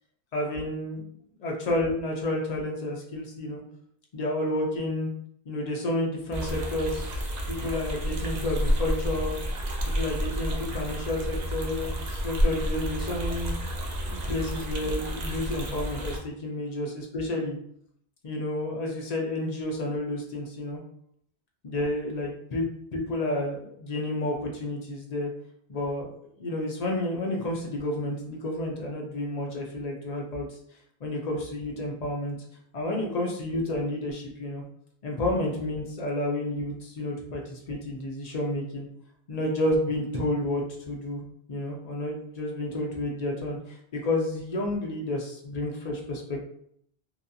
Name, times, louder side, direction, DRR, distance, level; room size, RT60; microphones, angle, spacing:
voice 1, 0.3-1.0 1.4-3.6 4.1-5.1 5.5-7.2 7.5-9.4 9.9-13.5 14.1-17.6 18.2-20.8 21.6-22.7 22.9-25.3 25.7-26.1 26.4-30.5 31.0-32.4 32.7-34.6 35.0-38.9 39.3-41.2 41.5-46.4, left 1 dB, 50° left, 0 dB, 0.5 m, -30 dB
sound 1, 6.3-16.2, equal, 55° right, 0.5 m, -30 dB
2.7 x 2.2 x 2.5 m, 0.67 s
omnidirectional pair, 1.1 m